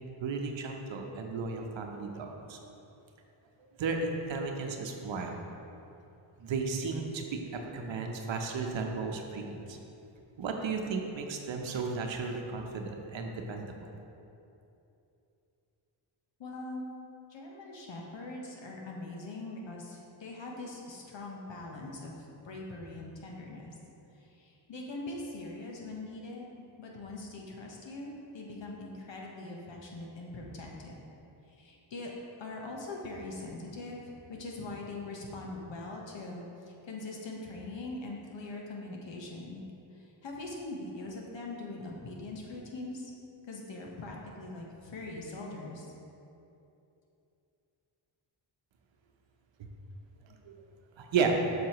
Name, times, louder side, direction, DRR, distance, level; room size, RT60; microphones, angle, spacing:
voice 1, 0.2-2.6 3.8-5.4 6.4-9.8 10.4-13.8 49.6-49.7 50.4-50.6 51.0-51.3, right 4 dB, 65° right, 3 dB, 0.9 m, -34 dB
voice 2, 16.4-16.8 17.3-23.7 24.1-26.5 26.8-31.0 31.5-32.1 32.4-34.0 34.3-39.6 39.9-43.1 43.5-45.9, left 2 dB, 65° left, -1 dB, 1.3 m, -42 dB
7.4 x 5.6 x 3.1 m, 2.8 s
cardioid pair, 60°, 49 cm